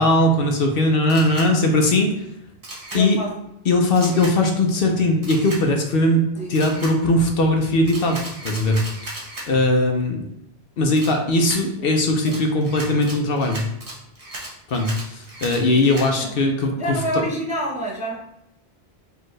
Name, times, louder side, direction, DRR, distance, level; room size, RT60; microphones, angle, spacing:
voice 1, 0.0-2.3 2.9-3.2 3.7-6.2 6.5-9.0 9.5-10.2 10.8-13.6 14.7-17.2, left 1 dB, 65° left, 3 dB, 0.8 m, -19 dB
Camera, 1.1-1.5 2.6-3.0 4.0-4.3 5.2-5.6 6.5-6.9 7.9-9.5 11.0-11.6 12.3-16.1, right 1 dB, 35° right, 1.0 m, -36 dB
voice 2, 2.9-3.3 6.4-6.6 11.8-11.9 12.3-12.4 15.8-16.4 16.8-18.2, right 1 dB, 10° right, -2 dB, 0.4 m, -28 dB
4.2 x 2.7 x 3.1 m, 0.81 s
omnidirectional pair, 1.1 m